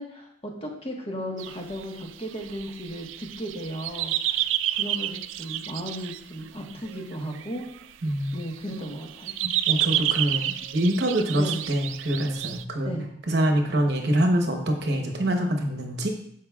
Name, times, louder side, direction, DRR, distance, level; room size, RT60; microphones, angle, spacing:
voice 1, 0.0-7.6 8.3-9.3 10.3-10.5 11.3-11.7 12.8-13.1, equal, 30° left, 0 dB, 1.4 m, -35 dB
sound 1, 1.4-6.2 6.7-7.8 8.3-12.6, right 12 dB, 80° right, 0.3 m, -30 dB
voice 2, 8.0-8.3 9.4-12.9 13.3-16.1, right 1 dB, 55° right, 3 dB, 1.0 m, -25 dB
13.0 x 4.9 x 2.4 m, 0.71 s
head